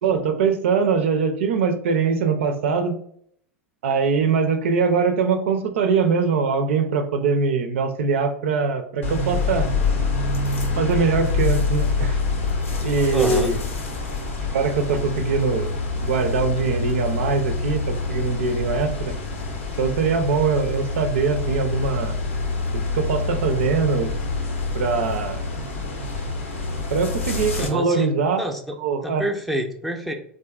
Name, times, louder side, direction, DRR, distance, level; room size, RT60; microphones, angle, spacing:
voice 1, 0.0-3.0 3.8-9.7 10.8-12.2 12.8-13.6 14.5-15.7 16.0-19.2 19.8-22.2 22.7-24.1 24.7-25.4 26.9-28.5 28.8-29.2, right 5 dB, 70° right, 6 dB, 0.5 m, -22 dB
sound 1, 9.0-27.7, left 3 dB, 80° left, 0.7 m, -26 dB
voice 2, 13.1-13.5 27.6-28.1 28.4-28.8 29.0-30.1, right 1 dB, ahead, 1 dB, 0.5 m, -27 dB
3.6 x 2.6 x 2.3 m, 0.64 s
hypercardioid pair, 90°, 7 cm